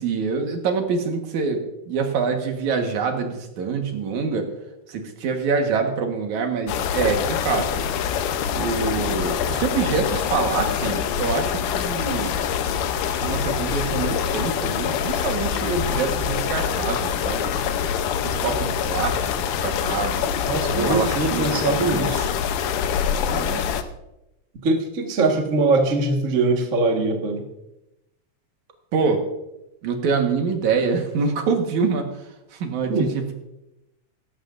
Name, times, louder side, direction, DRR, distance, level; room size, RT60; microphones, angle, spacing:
voice 1, 0.0-4.5 4.9-7.7 8.5-12.4 13.0-17.5 18.2-20.3 20.7-22.1 23.2-23.7 28.9-29.2 29.8-33.3, right 5 dB, 70° right, 3 dB, 2.7 m, -25 dB
sound 1, 6.7-23.8, left 8 dB, 85° left, 2.4 m, -25 dB
voice 2, 20.5-22.3 24.5-27.5 32.9-33.1, right 3 dB, 40° right, 2 dB, 1.2 m, -22 dB
17.0 x 14.5 x 2.6 m, 0.91 s
omnidirectional pair, 3.7 m